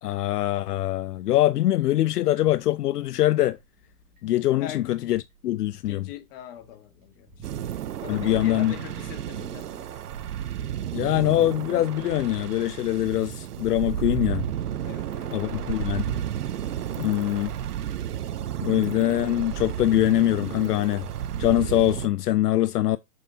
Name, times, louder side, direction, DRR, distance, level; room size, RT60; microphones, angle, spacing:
voice 1, 0.0-3.6 4.2-6.0 8.1-8.7 10.9-14.4 15.3-16.2 17.0-17.5 18.6-21.1 21.4-23.0, left 14 dB, 70° left, 0.6 m, -23 dB
sound 1, 2.4-9.5, equal, 20° right, 2.4 m, -52 dB
voice 2, 5.9-7.5 8.0-10.0 14.8-16.3 17.1-17.5, left 11 dB, 35° left, 1.5 m, -42 dB
sound 2, 7.4-22.1, right 10 dB, 70° right, 0.9 m, -32 dB
6.4 x 5.6 x 2.7 m
hypercardioid pair, 135°, 48 cm